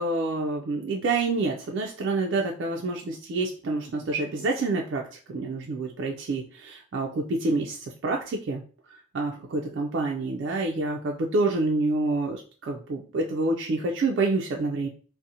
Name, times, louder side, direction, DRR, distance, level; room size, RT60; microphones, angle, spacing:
voice 1, 0.0-8.6 8.9-14.9, right 3 dB, 60° right, 0 dB, 0.3 m, -28 dB
2.5 x 2.0 x 2.7 m, 0.40 s
head